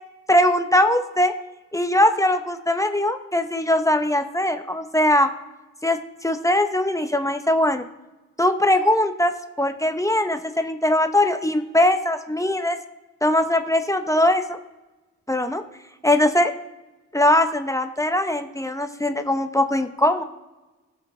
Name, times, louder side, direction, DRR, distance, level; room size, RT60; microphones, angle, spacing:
voice 1, 0.3-1.3 1.7-5.3 5.8-7.9 8.4-12.8 13.2-14.6 15.3-15.6 16.0-16.5 17.1-20.2, left 1 dB, 10° left, 7 dB, 0.9 m, -21 dB
14.5 x 5.8 x 3.9 m, 1.1 s
cardioid pair, 55°, 30 cm